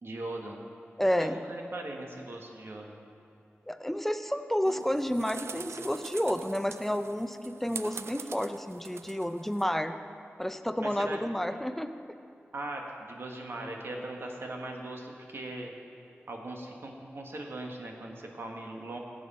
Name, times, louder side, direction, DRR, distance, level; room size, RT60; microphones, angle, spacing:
voice 1, 0.0-0.6 1.2-3.0 10.8-11.2 12.5-15.7 16.3-19.0, right 2 dB, 65° right, 1 dB, 1.5 m, -39 dB
voice 2, 1.0-1.4 3.7-9.9 10.4-11.9, equal, 5° left, 9 dB, 0.5 m, -30 dB
sound 1, 4.6-9.6, right 5 dB, 80° right, 0.4 m, -44 dB
17.5 x 7.8 x 4.3 m, 2.6 s
wide cardioid pair, 70°, 4 cm